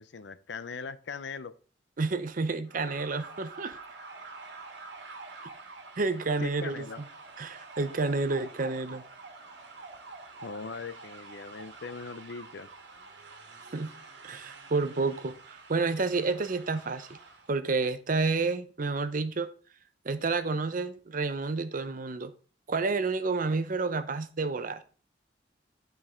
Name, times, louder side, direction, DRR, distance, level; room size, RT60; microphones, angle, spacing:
voice 1, 0.0-1.5 6.4-7.0 10.4-12.7, left 4 dB, 80° left, 0.6 m, -40 dB
voice 2, 2.0-3.8 6.0-6.8 7.4-9.0 13.7-13.9 14.2-17.2 17.5-19.5 20.0-22.3 22.7-24.8, right 3 dB, 50° right, 0.7 m, -30 dB
sound 1, 2.7-17.5, right 3 dB, 75° right, 1.4 m, -47 dB
10.5 x 4.7 x 3.6 m
head